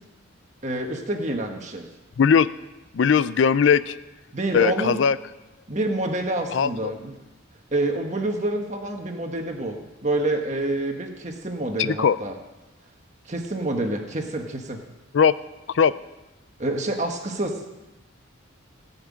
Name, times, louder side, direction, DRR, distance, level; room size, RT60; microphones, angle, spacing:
voice 1, 0.6-1.9 4.3-5.0 5.7-7.2 7.7-12.3 13.2-14.8 16.6-17.6, right 1 dB, 35° right, 3 dB, 1.5 m, -27 dB
voice 2, 2.2-2.5 2.9-4.0 4.5-5.2 6.5-6.9 11.8-12.2 15.1-15.3 15.7-15.9, left 6 dB, 65° left, 16 dB, 0.4 m, -19 dB
17.5 x 5.9 x 8.5 m, 1.0 s
head